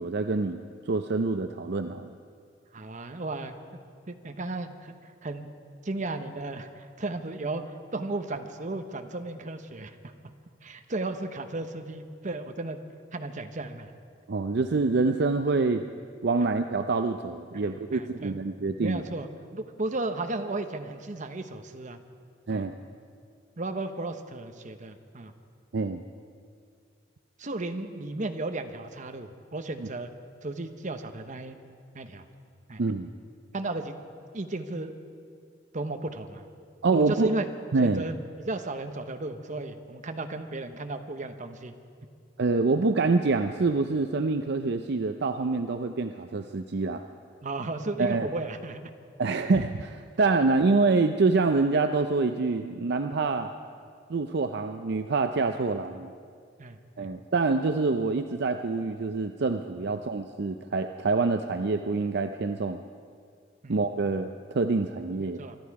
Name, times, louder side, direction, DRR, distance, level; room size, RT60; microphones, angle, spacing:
voice 1, 0.0-2.1 14.3-15.8 16.2-19.0 22.5-22.7 25.7-26.0 32.8-33.1 36.8-37.3 37.7-38.0 42.4-47.0 48.0-48.3 49.2-53.5 54.1-56.1 57.0-62.8 63.7-64.3 64.5-65.4, right 3 dB, 60° right, 7 dB, 0.5 m, -26 dB
voice 2, 2.7-3.5 4.1-5.5 5.8-10.1 10.6-12.8 13.1-13.9 16.4-16.5 17.5-18.4 18.8-22.0 22.5-22.7 23.6-25.3 27.4-30.1 30.4-31.6 31.9-32.2 32.7-32.8 33.5-33.9 34.3-34.9 35.7-36.5 36.9-37.5 37.8-41.7 47.4-48.9 56.6-57.1 63.6-63.8 65.4-65.6, right 2 dB, 40° right, 7 dB, 0.9 m, -34 dB
25.0 x 12.0 x 4.8 m, 2.2 s
head